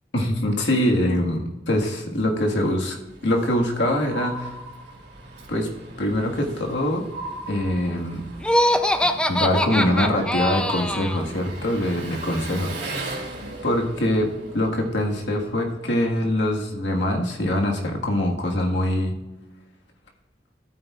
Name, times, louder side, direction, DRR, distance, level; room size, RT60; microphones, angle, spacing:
voice 1, 0.1-3.0 3.2-4.5 5.5-5.7 6.0-7.1 7.5-8.3 9.3-12.8 13.6-14.3 14.5-19.1, left 1 dB, 85° left, 1 dB, 1.6 m, -23 dB
Engine, 2.6-16.1, right 2 dB, 75° right, 2.4 m, -40 dB
sound 1, 4.1-5.3 7.1-8.3 10.3-11.6, right 2 dB, 60° right, 1.8 m, -37 dB
Laughter, 8.4-11.2, left 1 dB, 5° left, 0.4 m, -22 dB
14.0 x 8.8 x 2.4 m, 1.1 s
head